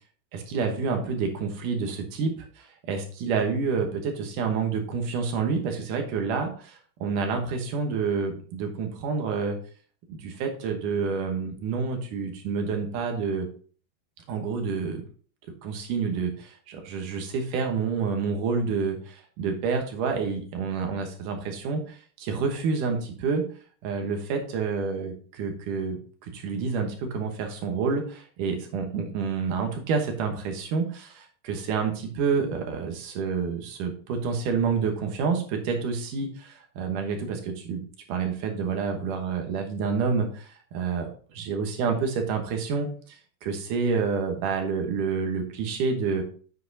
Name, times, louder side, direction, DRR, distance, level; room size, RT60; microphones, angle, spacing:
voice 1, 0.3-9.6 10.1-13.5 14.3-15.0 15.6-23.5 23.8-46.2, right 5 dB, 65° right, 4 dB, 2.2 m, -28 dB
8.3 x 7.4 x 2.7 m, 0.42 s
omnidirectional pair, 4.9 m